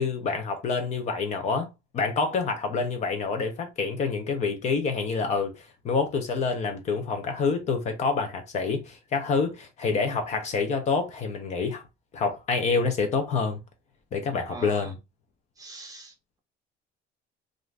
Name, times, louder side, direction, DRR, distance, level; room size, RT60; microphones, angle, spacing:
voice 1, 0.0-11.8 12.1-13.6 14.1-14.9, left 4 dB, 35° left, 0.5 m, -27 dB
voice 2, 14.5-15.0 15.6-16.1, right 3 dB, 20° right, 0.6 m, -42 dB
2.5 x 2.4 x 3.2 m
cardioid pair, 175°, 20 cm